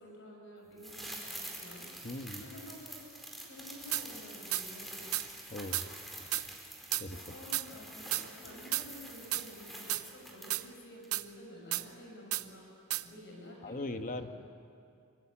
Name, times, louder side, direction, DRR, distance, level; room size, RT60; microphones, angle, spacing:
voice 1, 0.0-1.9 2.4-3.0 3.3-5.1 7.1-8.1 8.4-14.3, left 1 dB, 55° left, 0 dB, 6.5 m, -50 dB
sound 1, 0.8-10.8 11.0-11.1, right 1 dB, ahead, 4.4 m, -47 dB
voice 2, 2.0-2.5 5.5-5.9 7.0-7.2 13.6-14.3, left 2 dB, 35° left, 7 dB, 1.4 m, -39 dB
sound 2, 3.9-4.1 4.5-4.6 5.1-5.3 5.7-5.9 6.3-6.5 6.9-7.0 7.5-7.7 8.1-8.2 8.7-8.9 9.3-9.4 9.9-10.0 10.5-10.6 11.1-11.2 11.7-11.8 12.3-12.4 12.9-13.0, right 15 dB, 75° right, 0.7 m, -32 dB
25.0 x 25.0 x 8.7 m, 2.4 s
head